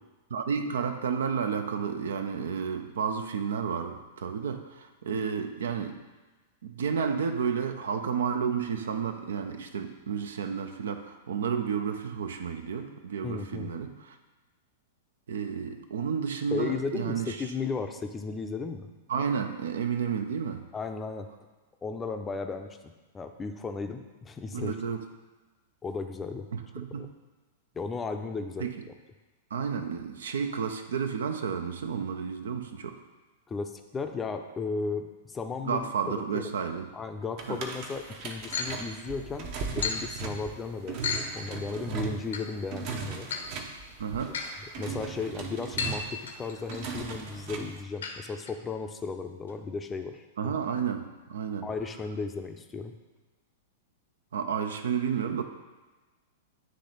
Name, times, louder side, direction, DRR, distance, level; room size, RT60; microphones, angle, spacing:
voice 1, 0.3-6.0 6.6-14.2 15.3-17.5 19.1-20.7 24.5-25.1 26.5-27.2 28.6-28.8 29.5-33.0 35.6-36.9 37.5-37.6 44.0-44.7 50.4-51.7 54.3-55.4, right 6 dB, 70° right, 7 dB, 0.5 m, -31 dB
voice 2, 13.2-13.7 16.5-18.9 20.7-21.3 21.8-22.8 23.1-24.7 25.8-26.5 26.8-27.1 27.7-28.7 33.5-35.9 36.1-36.5 36.9-43.3 44.3-44.4 44.8-50.5 51.6-53.0, left 4 dB, 15° left, 6 dB, 0.5 m, -35 dB
sound 1, 37.4-47.8, right 6 dB, 50° right, 0.9 m, -38 dB
sound 2, 38.5-38.7 39.8-40.0 41.0-41.2 42.3-42.4 43.2-43.4 44.3-44.5 45.8-46.0 46.3-46.8 48.0-48.1 48.5-48.6 48.9-49.0 49.5-49.6, left 6 dB, 70° left, 0.8 m, -32 dB
9.6 x 3.2 x 4.0 m, 1.2 s
figure-of-eight pair, 100°, 0 cm